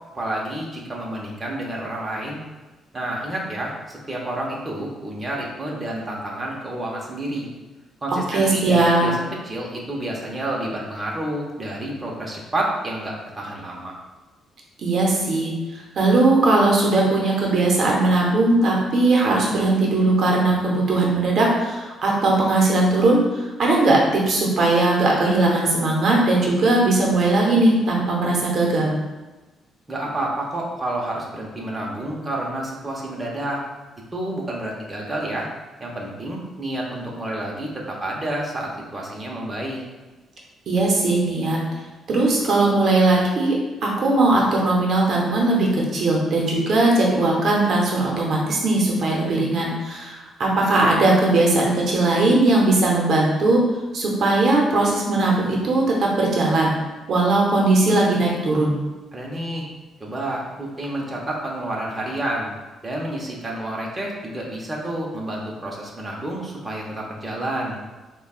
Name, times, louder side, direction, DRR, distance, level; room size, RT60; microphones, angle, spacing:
voice 1, 0.1-2.4 2.9-7.5 8.0-13.9 29.9-33.6 34.1-35.5 35.8-39.8 59.1-59.7 60.0-62.5 62.8-67.8, right 1 dB, 20° right, -3 dB, 0.8 m, -29 dB
voice 2, 8.1-9.1 14.8-29.0 40.7-41.6 42.1-43.6 43.8-53.6 53.9-56.7 57.1-58.8, right 2 dB, 60° right, -2 dB, 0.7 m, -19 dB
5.0 x 2.2 x 2.4 m, 1.2 s
cardioid pair, 90°, 0 cm